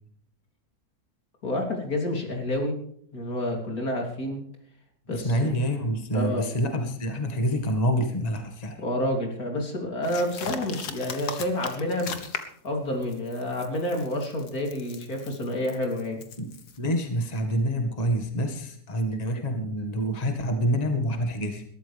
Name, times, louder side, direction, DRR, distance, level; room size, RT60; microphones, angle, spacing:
voice 1, 1.4-2.8 3.1-4.4 5.1-5.3 6.1-6.5 8.8-12.2 12.6-16.2, left 1 dB, 70° left, 2 dB, 3.8 m, -29 dB
voice 2, 5.1-8.8 16.4-16.5 16.8-21.6, equal, 25° left, 4 dB, 2.0 m, -27 dB
sound 1, 10.0-12.7 13.0-16.8, left 6 dB, 90° left, 2.1 m, -38 dB
21.0 x 13.5 x 3.5 m, 0.64 s
omnidirectional pair, 1.7 m